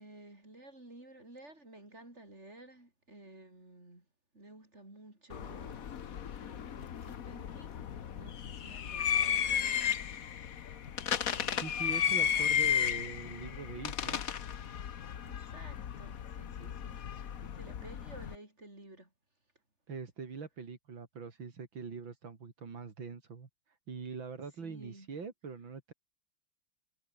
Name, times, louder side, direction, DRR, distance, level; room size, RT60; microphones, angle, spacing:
voice 1, 0.0-4.1 4.3-5.9 6.4-7.9 8.1-10.9 11.2-11.8 12.2-12.7 15.1-19.1 24.6-25.1, right 2 dB, 35° right, 7.4 m, -54 dB
sound 1, 5.3-18.3, left 9 dB, 50° left, 1.4 m, -34 dB
voice 2, 11.5-14.2 19.9-23.5 23.9-25.9, right 5 dB, 80° right, 3.7 m, -43 dB
omnidirectional pair, 2.1 m